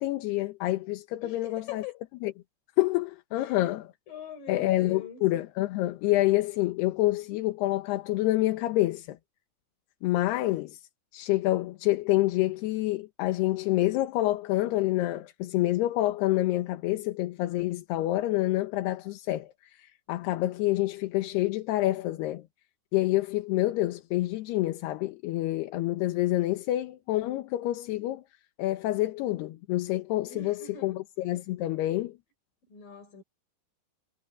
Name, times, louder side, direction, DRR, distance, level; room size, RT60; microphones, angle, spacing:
voice 1, 0.0-1.8 2.2-2.3 2.8-3.9 4.5-9.2 10.0-10.8 11.1-22.5 22.9-28.2 28.6-32.2, left 16 dB, 75° left, 3.0 m, -27 dB
voice 2, 1.2-2.0 3.4-3.7 4.1-5.2 30.2-31.0 32.7-33.2, left 9 dB, 50° left, 6.0 m, -42 dB
omnidirectional pair, 5.1 m